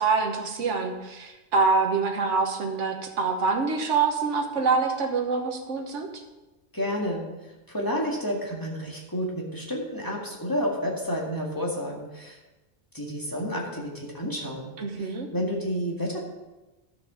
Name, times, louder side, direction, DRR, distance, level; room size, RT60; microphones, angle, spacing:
voice 1, 0.0-6.1 14.8-15.3, right 4 dB, 75° right, 3 dB, 1.5 m, -25 dB
voice 2, 6.7-12.4 12.9-14.7 15.0-16.2, equal, 15° left, -2 dB, 2.0 m, -30 dB
12.0 x 6.9 x 5.0 m, 1.1 s
omnidirectional pair, 1.2 m